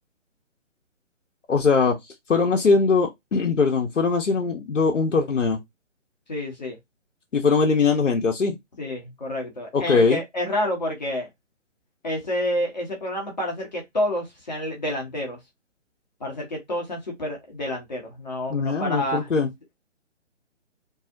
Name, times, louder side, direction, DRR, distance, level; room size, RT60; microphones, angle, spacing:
voice 1, 1.5-2.0 2.3-5.6 7.3-8.6 9.7-10.2 18.5-19.5, left 4 dB, 75° left, 0.6 m, -21 dB
voice 2, 6.3-6.8 8.8-11.3 12.0-15.4 16.2-19.3, left 1 dB, 35° left, 0.7 m, -29 dB
2.6 x 2.0 x 2.5 m
figure-of-eight pair, 140°, 37 cm